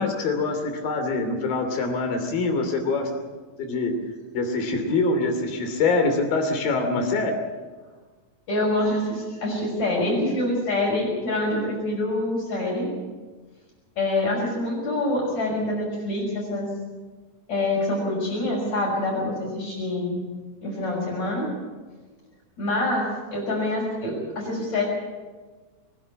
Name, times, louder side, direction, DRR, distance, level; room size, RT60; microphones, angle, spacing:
voice 1, 0.0-3.1 3.6-4.0 4.3-7.4, left 3 dB, 85° left, 5 dB, 4.6 m, -24 dB
voice 2, 8.5-12.9 14.0-16.7 17.5-20.2 20.6-21.5 22.6-24.8, left 1 dB, 55° left, -5 dB, 7.2 m, -26 dB
24.0 x 11.5 x 9.8 m, 1.3 s
omnidirectional pair, 4.0 m